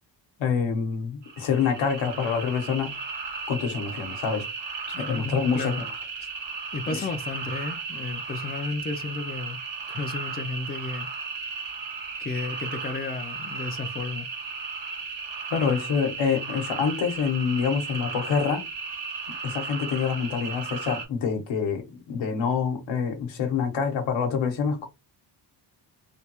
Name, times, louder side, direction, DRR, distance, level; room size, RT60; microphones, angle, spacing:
voice 1, 0.4-2.9 3.5-4.4 5.0-5.8 6.9-7.0 15.5-18.7 19.4-24.9, left 6 dB, 85° left, 1.0 m, -26 dB
sound 1, 1.2-21.1, right 5 dB, 70° right, 1.5 m, -35 dB
voice 2, 5.0-5.8 6.7-9.6 9.9-11.1 12.2-14.3, left 3 dB, 25° left, 0.4 m, -33 dB
3.3 x 2.2 x 2.9 m
wide cardioid pair, 145°, 45 cm